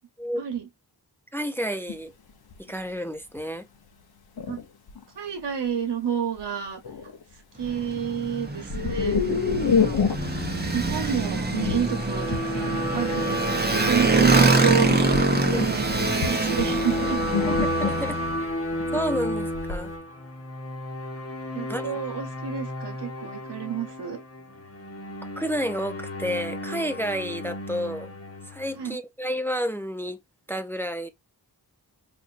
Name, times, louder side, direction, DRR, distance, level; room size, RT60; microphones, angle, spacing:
voice 1, 0.3-0.7 4.5-4.6 5.2-6.8 7.6-9.2 9.6-10.0 10.7-14.9 15.5-17.2 21.5-24.2 28.7-29.0, right 8 dB, 90° right, 1.0 m, -29 dB
voice 2, 1.3-2.1 2.7-3.7 9.8-10.1 15.5-15.7 17.5-18.2 18.9-19.9 21.7-21.8 25.4-28.1 28.5-30.2 30.5-31.1, equal, 5° left, 0.5 m, -30 dB
sound 1, 1.9-2.0 2.5-2.7 3.4-3.5 4.4-5.0 6.4-6.5 6.8-7.2 8.7-19.9, left 5 dB, 65° left, 0.8 m, -29 dB
Motorcycle, 7.6-18.3, right 3 dB, 25° right, 0.8 m, -25 dB
sound 2, 10.2-28.9, equal, 35° left, 1.1 m, -32 dB
4.3 x 2.5 x 2.4 m
wide cardioid pair, 70°, 40 cm